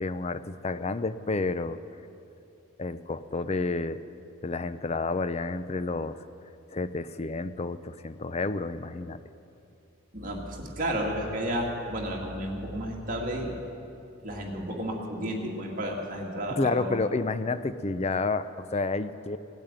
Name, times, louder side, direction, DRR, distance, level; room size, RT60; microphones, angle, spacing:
voice 1, 0.0-1.8 2.8-4.0 4.4-6.2 6.7-9.2 16.6-19.4, left 3 dB, 30° left, 13 dB, 0.4 m, -30 dB
voice 2, 10.1-13.6 14.2-17.0, equal, 35° right, -1 dB, 2.2 m, -32 dB
18.0 x 8.7 x 9.0 m, 2.8 s
head